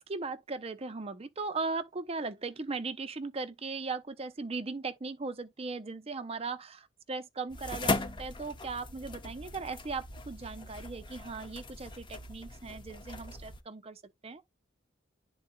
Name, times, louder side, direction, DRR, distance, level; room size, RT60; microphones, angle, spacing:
voice 1, 0.0-14.4, right 4 dB, 30° right, 0.6 m, -38 dB
sound 1, 7.5-13.6, left 3 dB, 25° left, 0.8 m, -38 dB
11.0 x 3.9 x 2.2 m
head